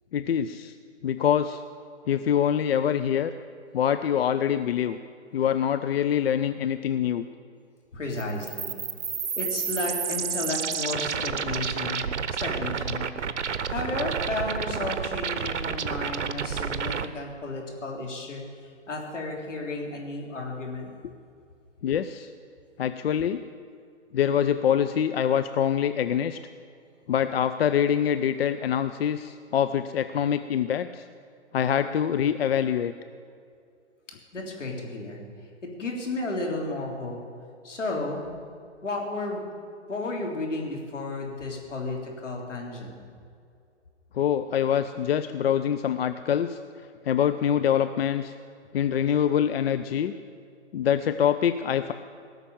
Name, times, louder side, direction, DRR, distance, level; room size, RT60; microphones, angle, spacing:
voice 1, 0.1-0.7 1.0-1.6 2.1-3.3 3.7-5.0 5.3-7.2 21.8-22.3 22.8-23.4 24.1-26.4 27.1-31.1 31.5-32.9 44.1-46.6 47.0-48.3 48.7-50.1 50.7-51.9, left 9 dB, 55° left, 10 dB, 0.6 m, -25 dB
voice 2, 7.9-8.8 9.4-12.0 12.4-13.0 13.7-18.4 18.9-20.9 34.3-35.2 35.6-37.2 37.6-38.3 38.8-39.5 39.9-42.9, left 2 dB, 80° left, 0 dB, 3.5 m, -33 dB
sound 1, 8.2-17.1, right 7 dB, 70° right, 0.9 m, -30 dB
18.0 x 6.7 x 8.9 m, 2.3 s
hypercardioid pair, 130°, 36 cm